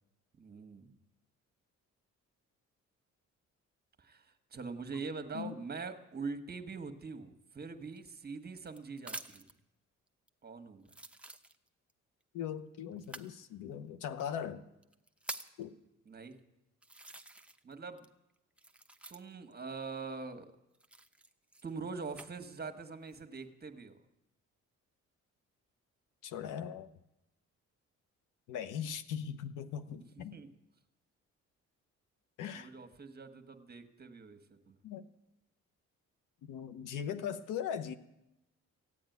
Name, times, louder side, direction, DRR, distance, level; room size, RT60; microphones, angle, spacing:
voice 1, 0.4-1.0 4.0-9.5 10.4-10.9 16.1-16.4 17.6-18.1 19.1-20.5 21.6-24.0 30.3-30.5 32.5-34.8, right 4 dB, 30° right, 1.4 m, -43 dB
sound 1, 7.9-9.6 10.3-10.4 10.8-11.9 13.0-13.3 14.2-14.3 14.8-15.6 16.3-16.4 16.8-17.7 18.0-19.5 20.7-22.3 22.9-23.4, right 1 dB, 5° right, 0.8 m, -47 dB
voice 2, 12.3-14.7 15.6-15.7 26.2-26.9 28.5-30.4 32.4-32.7 34.8-35.1 36.5-38.0, left 8 dB, 90° left, 1.0 m, -39 dB
15.5 x 8.6 x 9.3 m
cardioid pair, 90°, 30 cm